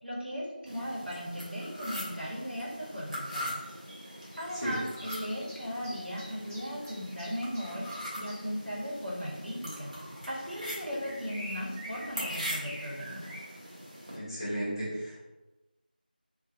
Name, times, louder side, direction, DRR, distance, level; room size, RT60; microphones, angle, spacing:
voice 1, 0.0-3.6 4.4-13.3, equal, 75° right, -5 dB, 1.2 m, -37 dB
sound 1, 0.7-14.2, equal, 50° right, 0.9 m, -42 dB
sound 2, 3.2-9.3 10.2-10.3 11.0-13.5, equal, 15° right, 0.6 m, -47 dB
voice 2, 14.1-15.2, equal, 30° left, -10 dB, 1.0 m, -34 dB
2.7 x 2.7 x 2.6 m, 1.1 s
figure-of-eight pair, 175°, 5 cm